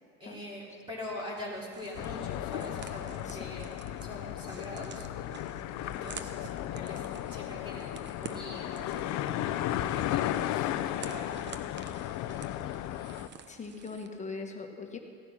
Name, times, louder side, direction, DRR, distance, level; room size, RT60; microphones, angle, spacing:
voice 1, 0.2-3.7 4.0-5.1 5.8-7.0 7.3-11.5, left 1 dB, 15° right, -6 dB, 3.3 m, -43 dB
sound 1, 1.7-14.1, right 6 dB, 30° right, 0.9 m, -50 dB
sound 2, 1.9-13.3, left 13 dB, 60° left, 0.6 m, -35 dB
voice 2, 13.5-15.0, left 4 dB, 20° left, 2 dB, 1.6 m, -40 dB
16.5 x 9.9 x 6.0 m, 2.6 s
supercardioid pair, 110°, 34 cm